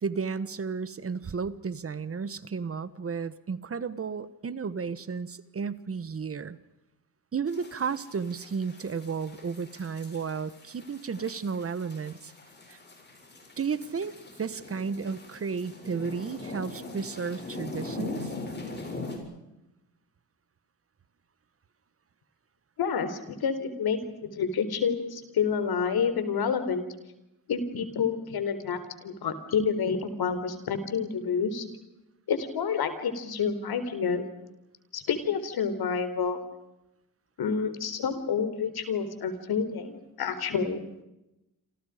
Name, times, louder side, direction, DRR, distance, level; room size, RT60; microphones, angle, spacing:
voice 1, 0.0-6.6 7.3-12.3 12.7-12.8 13.6-14.1 14.4-18.3, right 5 dB, 40° right, 15 dB, 1.3 m, -33 dB
sound 1, 7.5-19.2, left 3 dB, 30° left, 7.1 m, -42 dB
voice 2, 22.8-26.8 27.5-31.7 32.3-34.3 34.9-36.4 37.4-40.8, left 6 dB, 80° left, 10 dB, 4.1 m, -29 dB
28.0 x 28.0 x 5.1 m, 0.93 s
wide cardioid pair, 130°, 37 cm